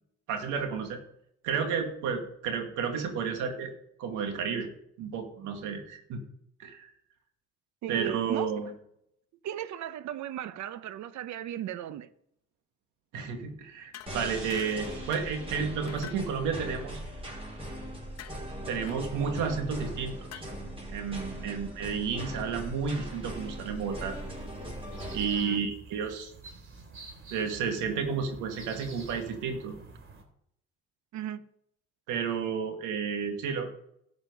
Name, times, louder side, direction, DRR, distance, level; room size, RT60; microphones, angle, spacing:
voice 1, 0.3-1.0 1.4-3.7 4.0-4.7 5.0-6.2 6.6-6.9 7.9-8.7 13.1-17.0 18.7-20.5 20.9-24.2 25.1-26.3 27.3-29.7 32.1-33.7, right 6 dB, 85° right, 2.1 m, -32 dB
voice 2, 7.8-8.5 9.4-12.1 21.4-21.6 25.3-25.6 31.1-31.4, right 11 dB, 65° right, 0.9 m, -36 dB
sound 1, 13.9-14.1 14.5-14.9 15.1-15.4 15.9-16.2 18.2-18.4 18.8-19.0 20.3-20.4, left 11 dB, 55° left, 1.0 m, -44 dB
sound 2, 14.1-25.3, right 1 dB, 20° right, 5.4 m, -40 dB
sound 3, 22.8-30.2, right 4 dB, 40° right, 2.9 m, -49 dB
12.5 x 7.4 x 5.3 m
supercardioid pair, 85°, 30 cm